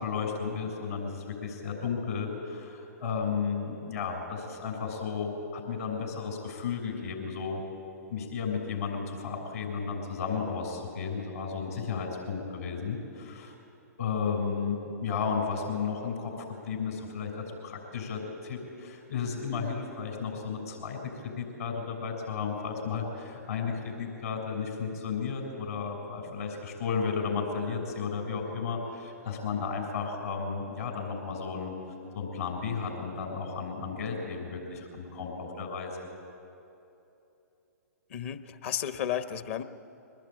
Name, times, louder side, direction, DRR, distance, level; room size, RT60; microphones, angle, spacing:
voice 1, 0.0-7.6 8.1-13.5 14.0-16.3 16.6-31.7 32.1-35.9, left 5 dB, 65° left, 2 dB, 6.9 m, -33 dB
voice 2, 38.1-39.6, left 10 dB, 50° left, 11 dB, 1.1 m, -33 dB
23.5 x 20.0 x 9.1 m, 2.8 s
figure-of-eight pair, 120°, 9 cm